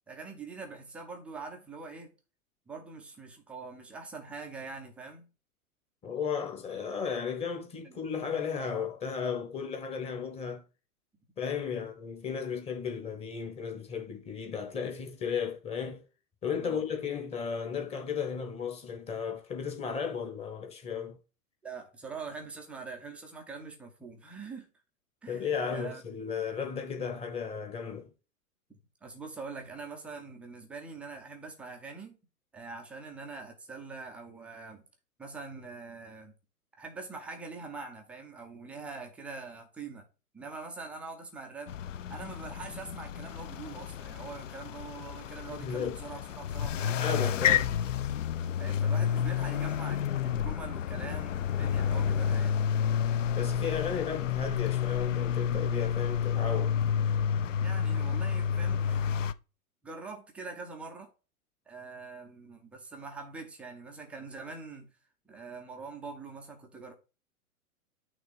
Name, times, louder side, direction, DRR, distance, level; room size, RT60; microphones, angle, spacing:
voice 1, 0.1-2.1 2.7-5.3 7.8-8.0 16.6-16.8 21.6-24.7 25.2-26.0 29.0-32.2 32.5-34.9 35.2-36.3 36.8-40.1 40.3-41.8 42.1-47.0 48.6-52.6 57.6-59.1 59.8-61.1 61.7-64.9 65.3-66.9, right 4 dB, 5° right, 0.4 m, -44 dB
voice 2, 6.0-10.6 11.4-16.0 16.4-21.2 25.3-28.1 45.5-46.0 47.0-47.7 53.3-56.8, left 6 dB, 15° left, 1.0 m, -34 dB
sound 1, 41.7-59.3, left 8 dB, 55° left, 0.6 m, -30 dB
6.1 x 3.1 x 5.4 m
figure-of-eight pair, 115°, 44 cm